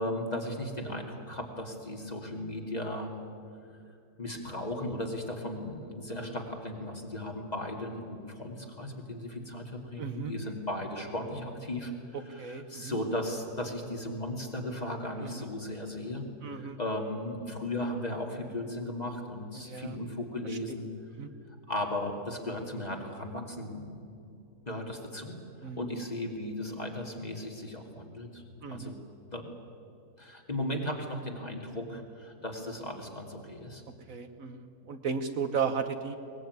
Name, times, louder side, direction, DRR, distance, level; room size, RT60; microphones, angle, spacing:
voice 1, 0.0-3.2 4.2-11.9 12.3-20.9 21.5-24.3 24.7-25.3 25.6-28.4 28.7-29.0 29.3-29.6 30.2-33.8, left 1 dB, 25° left, 2 dB, 2.5 m, -36 dB
voice 2, 10.0-10.3 12.4-13.0 15.2-15.5 16.4-16.8 19.5-20.0 20.5-20.6 21.2-21.3 25.6-25.9 28.6-28.9 34.1-36.2, right 6 dB, 60° right, 8 dB, 1.3 m, -35 dB
22.5 x 19.5 x 9.3 m, 2.6 s
omnidirectional pair, 1.7 m